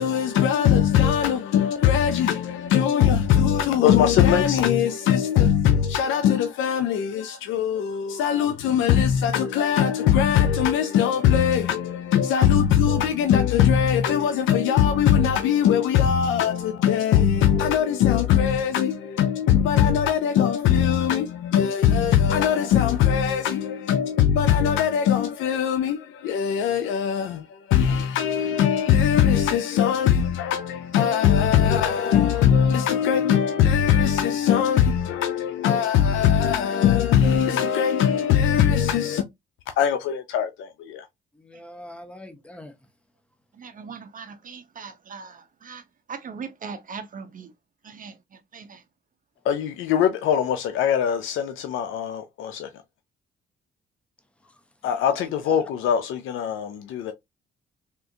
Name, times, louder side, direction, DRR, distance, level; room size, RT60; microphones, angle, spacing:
voice 1, 0.0-39.2 39.8-41.1 49.4-52.7 54.8-57.1, left 9 dB, 80° left, 0.5 m, -21 dB
voice 2, 41.3-42.7 54.4-54.5 54.8-55.6, left 1 dB, 5° left, 0.7 m, -44 dB
voice 3, 43.5-47.5 47.8-48.8, right 5 dB, 45° right, 0.6 m, -40 dB
3.6 x 2.5 x 2.6 m
cardioid pair, 90°, 20 cm